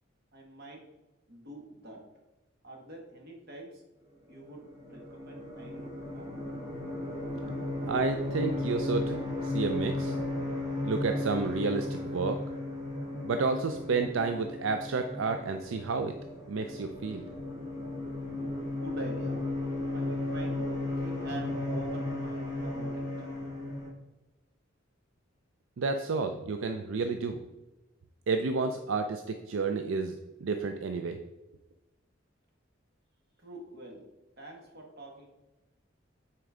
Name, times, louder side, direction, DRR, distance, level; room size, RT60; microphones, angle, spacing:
voice 1, 0.3-0.8 1.3-2.0 2.6-3.8 4.3-6.3 18.7-19.4 19.9-23.3 33.4-34.1 34.4-35.3, right 2 dB, 55° right, 0 dB, 1.8 m, -45 dB
sound 1, 4.4-23.9, left 2 dB, 20° right, 1.6 m, -35 dB
voice 2, 7.8-9.2 9.4-10.2 10.8-12.4 13.2-16.1 16.5-17.2 25.8-27.4 28.3-31.2, right 4 dB, 80° right, 6 dB, 0.5 m, -30 dB
9.3 x 4.5 x 3.7 m, 1.0 s
head